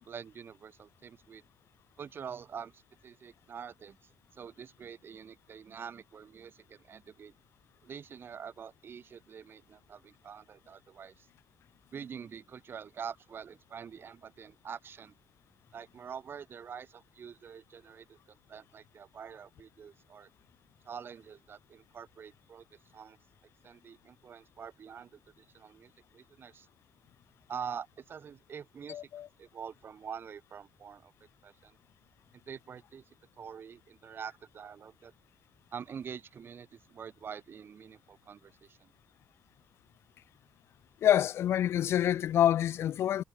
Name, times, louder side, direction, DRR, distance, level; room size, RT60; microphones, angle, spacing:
voice 1, 0.0-1.4 2.0-7.3 7.8-11.3 11.9-15.1 15.7-20.3 20.8-23.2 23.6-26.7 27.5-29.1 29.4-31.1 31.4-31.8 32.5-33.0 33.4-35.1 35.7-38.9, right 7 dB, 55° right, 2.3 m, -46 dB
voice 2, 28.9-29.3 41.0-43.2, left 11 dB, 65° left, 0.5 m, -27 dB
supercardioid pair, 60°, 5 cm